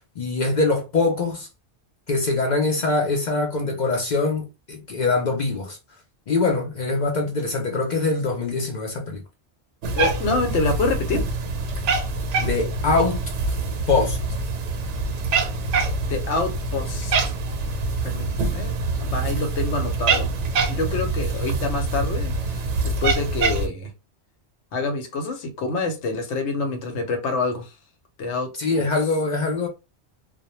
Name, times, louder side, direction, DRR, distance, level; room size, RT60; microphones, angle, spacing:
voice 1, 0.2-1.5 2.1-5.8 6.3-9.2 12.4-13.3 13.9-14.2 28.6-29.7, left 3 dB, 55° left, 0.5 m, -23 dB
Cat, 9.8-23.7, right 3 dB, 85° right, 0.9 m, -25 dB
voice 2, 10.0-11.2 16.1-17.3 18.0-18.7 19.0-20.4 20.7-23.9 24.7-27.7 28.2-28.5 28.7-28.9, left 3 dB, 80° left, 1.0 m, -26 dB
2.1 x 2.1 x 2.9 m
omnidirectional pair, 1.2 m